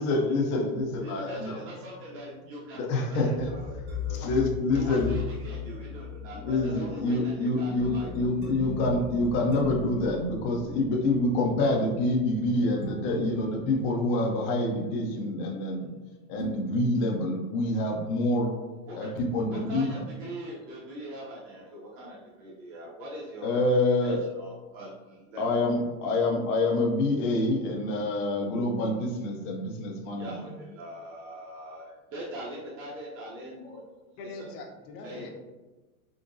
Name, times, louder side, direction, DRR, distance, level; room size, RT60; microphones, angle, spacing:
voice 1, 0.0-1.6 2.8-3.5 4.2-5.1 6.3-15.9 16.3-18.5 19.0-20.0 23.4-24.2 25.4-30.3, left 2 dB, 25° left, 0 dB, 0.4 m, -26 dB
sound 1, 0.8-16.0 16.4-16.5, left 4 dB, 50° right, 1.5 m, -39 dB
voice 2, 0.9-4.2 4.7-8.3 18.9-19.1 19.5-25.6 30.1-33.8 34.2-34.5 35.0-35.3, right 1 dB, 30° right, -6 dB, 0.7 m, -42 dB
voice 3, 34.2-35.3, left 2 dB, 80° left, 2 dB, 0.9 m, -42 dB
3.7 x 2.8 x 2.6 m, 1.2 s
supercardioid pair, 145°, 45 cm